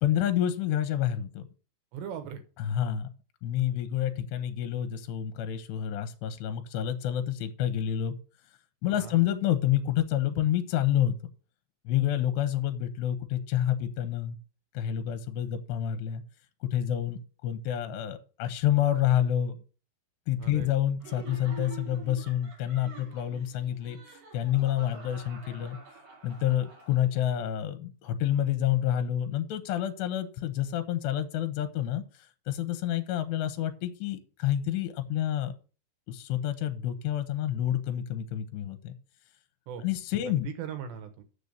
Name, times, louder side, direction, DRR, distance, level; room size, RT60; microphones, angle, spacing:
voice 1, 0.0-1.4 2.6-3.1 3.4-8.1 8.8-11.2 11.9-14.4 14.7-16.2 16.6-19.6 20.3-24.0 24.3-25.8 26.2-35.5 36.1-38.9 39.8-40.5, left 11 dB, 80° left, 9 dB, 2.8 m, -28 dB
voice 2, 1.9-2.4 9.0-9.2 20.4-20.7 39.7-39.8 40.3-41.2, right 8 dB, 80° right, 8 dB, 3.3 m, -39 dB
Laughter, 21.0-27.3, right 5 dB, 50° right, 3.5 m, -48 dB
6.8 x 6.8 x 6.6 m, 0.36 s
omnidirectional pair, 5.1 m